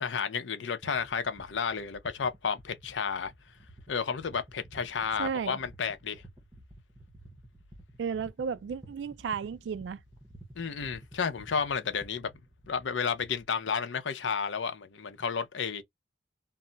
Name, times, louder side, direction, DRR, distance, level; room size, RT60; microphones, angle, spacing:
voice 1, 0.0-3.3 3.9-6.2 10.6-12.3 12.7-15.8, left 6 dB, 85° left, 0.6 m, -32 dB
sound 1, 0.8-13.4, right 1 dB, 20° right, 0.6 m, -53 dB
voice 2, 5.2-5.6 8.0-10.0, right 6 dB, 75° right, 0.3 m, -33 dB
2.2 x 2.0 x 3.8 m
head